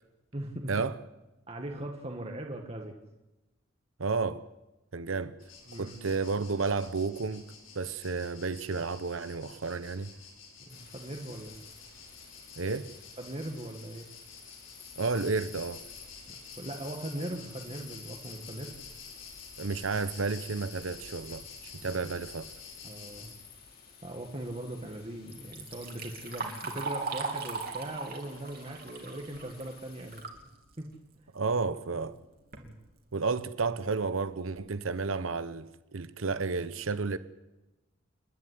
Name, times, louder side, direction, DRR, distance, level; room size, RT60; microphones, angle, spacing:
voice 1, 0.3-0.7 1.5-2.9 5.7-6.0 10.6-11.6 13.2-14.1 16.3-18.7 21.8-22.0 22.8-23.3 24.0-30.2 30.8-30.9 32.6-32.7, right 1 dB, 30° right, 1.7 m, -40 dB
voice 2, 4.0-4.4 4.9-5.3 5.7-10.1 12.6-12.9 15.0-15.8 19.6-21.4 21.8-22.5 31.3-32.2 33.1-37.2, right 4 dB, 90° right, 0.9 m, -32 dB
sound 1, 5.4-23.4, left 5 dB, 75° left, 5.9 m, -50 dB
sound 2, 10.7-30.2, left 6 dB, 50° left, 4.4 m, -52 dB
Liquid, 25.3-30.4 30.8-30.9 31.8-31.9 32.3-32.7 33.3-33.4 33.9-34.0 34.4-34.7, right 4 dB, 50° right, 3.0 m, -38 dB
28.5 x 11.0 x 9.6 m
head